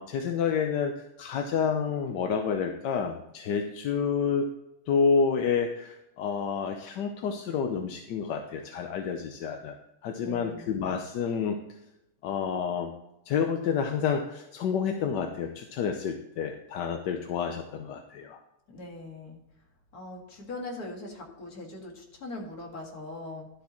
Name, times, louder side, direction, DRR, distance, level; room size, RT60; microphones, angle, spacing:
voice 1, 0.0-4.5 4.9-9.7 10.0-11.6 12.2-12.9 13.3-18.4, left 6 dB, 65° left, 5 dB, 1.2 m, -29 dB
voice 2, 10.2-10.8 18.7-19.4 19.9-23.5, left 2 dB, 45° left, 1 dB, 2.2 m, -41 dB
12.0 x 8.3 x 3.0 m, 0.87 s
omnidirectional pair, 2.3 m